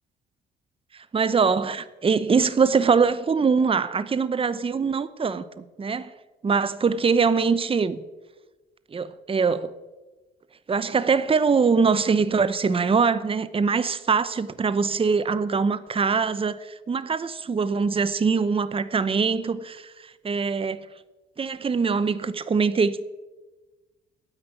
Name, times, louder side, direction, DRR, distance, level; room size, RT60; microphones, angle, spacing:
voice 1, 0.9-6.1 6.4-8.0 8.9-9.7 10.7-20.9 21.4-23.1, right 5 dB, 30° right, 0.8 m, -23 dB
9.9 x 8.7 x 9.2 m
cardioid pair, 90°, 20 cm